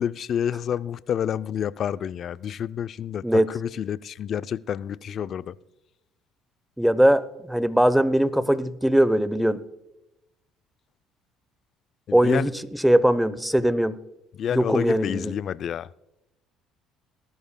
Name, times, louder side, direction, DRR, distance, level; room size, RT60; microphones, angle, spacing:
voice 1, 0.0-5.6 12.1-12.5 14.3-15.9, left 9 dB, 55° left, 16 dB, 0.4 m, -29 dB
voice 2, 6.8-9.6 12.1-12.5 12.8-14.0 14.5-15.3, right 1 dB, 5° right, 17 dB, 0.7 m, -20 dB
18.5 x 12.5 x 2.2 m, 0.93 s
supercardioid pair, 85°, 0 cm